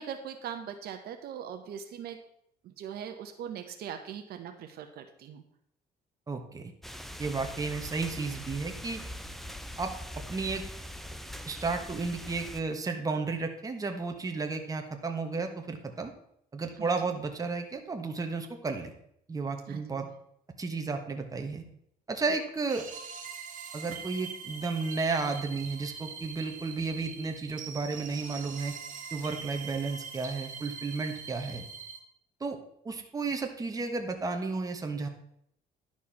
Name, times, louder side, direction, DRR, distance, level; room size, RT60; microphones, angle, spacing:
voice 1, 0.0-2.2 2.6-5.4 7.3-7.4 16.8-16.9 19.7-20.1, right 8 dB, 70° right, 6 dB, 1.0 m, -41 dB
voice 2, 6.3-6.7 7.2-9.0 9.8-9.9 10.3-10.6 11.5-16.1 16.5-18.9 19.3-20.1 20.6-21.6 22.1-22.9 23.7-28.7 29.1-31.6 32.4-32.6 32.8-35.1, right 4 dB, 20° right, 4 dB, 1.3 m, -33 dB
sound 1, 6.8-12.6, equal, ahead, 0.7 m, -42 dB
sound 2, 22.7-32.0, right 6 dB, 50° right, 1.3 m, -43 dB
11.0 x 4.7 x 5.7 m, 0.72 s
cardioid pair, 110°, 17 cm